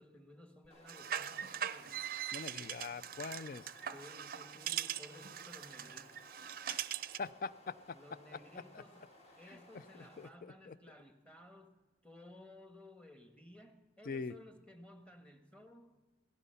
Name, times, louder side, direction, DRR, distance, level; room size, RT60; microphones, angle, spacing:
voice 1, 0.0-2.0 3.9-6.3 7.9-9.0 9.4-11.8 12.0-16.0, left 1 dB, 5° left, 6 dB, 1.2 m, -56 dB
sound 1, 0.6-10.3, left 1 dB, 35° left, 1.7 m, -61 dB
sound 2, 0.9-7.3, right 10 dB, 50° right, 0.5 m, -41 dB
voice 2, 2.3-3.7 6.7-6.9 7.2-8.0 8.3-8.8 9.5-10.8 14.0-14.4, left 4 dB, 50° left, 16 dB, 0.4 m, -44 dB
17.0 x 15.0 x 5.6 m, 1.4 s
head